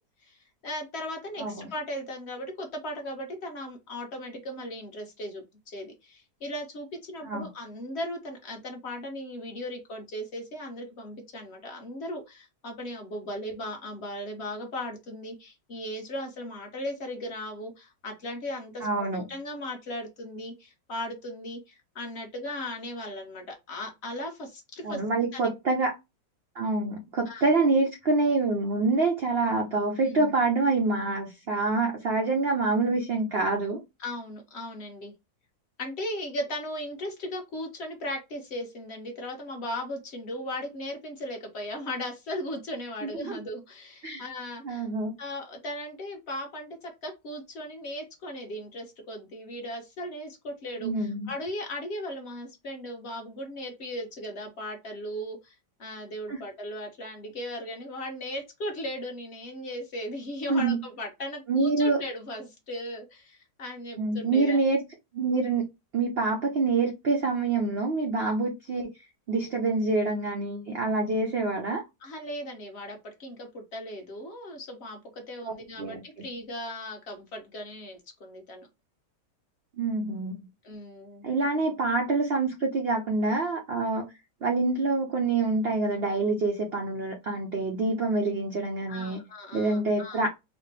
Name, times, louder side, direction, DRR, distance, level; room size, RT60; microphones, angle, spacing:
voice 1, 0.6-18.9 19.3-25.0 25.3-25.5 27.3-27.5 30.1-30.3 34.0-35.1 35.8-44.9 45.2-64.6 68.2-68.3 72.0-78.7 80.6-81.3 88.9-90.2, left 1 dB, 45° left, 1.1 m, -37 dB
voice 2, 18.8-19.2 24.8-26.0 26.6-33.8 43.0-43.4 44.0-44.2 44.6-45.1 50.8-51.3 56.3-56.4 60.5-60.8 61.5-62.0 64.0-64.8 65.1-65.6 65.9-68.9 69.3-71.8 75.4-76.2 79.8-80.5 81.2-84.1 84.4-89.2 89.5-90.3, right 3 dB, 75° right, 0.5 m, -26 dB
4.1 x 2.1 x 3.3 m
omnidirectional pair, 1.8 m